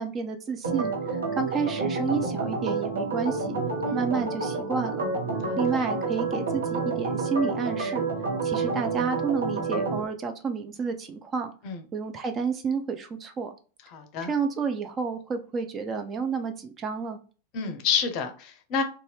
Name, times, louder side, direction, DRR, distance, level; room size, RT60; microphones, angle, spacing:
voice 1, 0.0-3.6 3.9-5.1 5.6-8.1 8.4-11.5 11.9-13.5 14.3-17.2, right 5 dB, 25° right, 0.4 m, -30 dB
Organ, 0.6-10.0, right 4 dB, 70° right, 0.8 m, -29 dB
voice 2, 13.9-14.3 17.5-18.8, left 6 dB, 40° left, 0.5 m, -29 dB
2.6 x 2.3 x 3.2 m
figure-of-eight pair, 90°, 0 cm